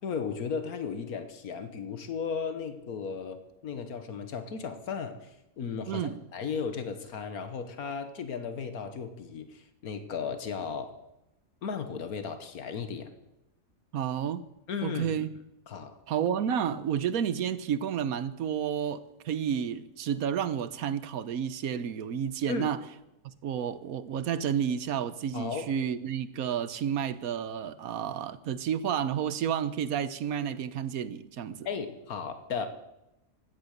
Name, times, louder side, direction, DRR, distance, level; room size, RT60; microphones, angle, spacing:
voice 1, 0.0-11.0 11.6-13.1 14.7-15.2 15.7-16.0 22.5-22.8 25.3-25.7 31.7-32.7, left 6 dB, 85° left, 1.7 m, -35 dB
voice 2, 5.9-6.2 13.9-14.4 14.8-15.3 16.1-22.8 23.4-31.7, right 8 dB, 75° right, 1.3 m, -31 dB
16.0 x 12.0 x 6.6 m
omnidirectional pair, 1.5 m